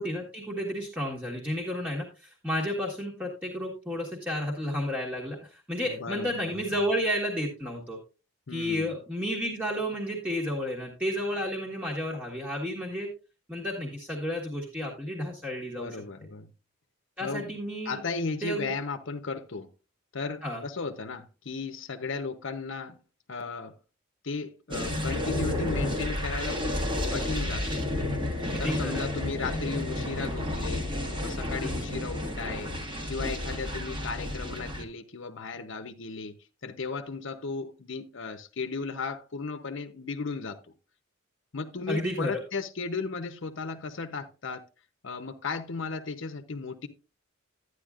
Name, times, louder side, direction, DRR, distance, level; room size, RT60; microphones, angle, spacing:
voice 1, 0.0-8.0 8.5-13.1 13.5-15.9 17.2-18.0 18.4-18.7 20.4-20.6 28.6-29.0 31.6-31.8 41.9-42.4, equal, 5° right, 1.4 m, -32 dB
voice 2, 5.8-6.8 8.5-8.9 15.7-16.5 17.2-17.6 17.9-19.7 20.1-23.0 23.3-23.7 24.2-26.8 27.1-27.8 28.4-30.9 31.2-32.8 33.1-36.4 36.6-40.6 41.5-44.6 45.0-46.9, left 4 dB, 65° left, 0.8 m, -35 dB
sound 1, 24.7-34.8, left 1 dB, 25° right, 1.5 m, -31 dB
12.0 x 9.6 x 2.4 m
head